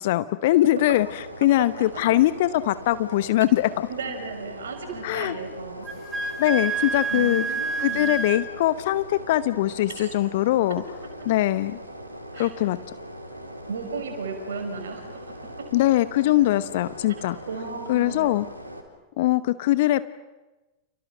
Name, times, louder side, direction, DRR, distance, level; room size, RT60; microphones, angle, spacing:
voice 1, 0.0-3.9 5.0-5.3 6.4-7.4 7.8-10.8 11.2-11.8 12.4-12.8 15.7-17.4 17.9-18.5 19.2-20.0, left 15 dB, 55° left, 15 dB, 0.9 m, -22 dB
sound 1, 0.7-18.8, right 1 dB, 85° right, 3.9 m, -40 dB
voice 2, 3.9-5.9 7.1-8.1 9.9-10.1 12.3-12.5 13.7-15.7 17.5-18.3, right 4 dB, 65° right, 6 dB, 5.8 m, -35 dB
Wind instrument woodwind instrument, 5.8-8.4, right 4 dB, 15° right, 4.1 m, -28 dB
30.0 x 29.5 x 6.4 m, 1.1 s
figure-of-eight pair, 90°, 0 cm